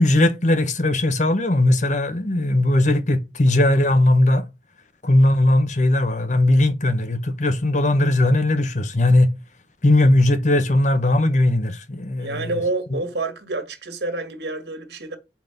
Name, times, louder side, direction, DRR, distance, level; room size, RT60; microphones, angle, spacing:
voice 1, 0.0-4.4 5.0-9.3 9.8-12.5, left 1 dB, 45° left, 0.9 m, -18 dB
voice 2, 12.2-15.2, right 2 dB, 70° right, 1.8 m, -28 dB
5.8 x 5.3 x 5.8 m
head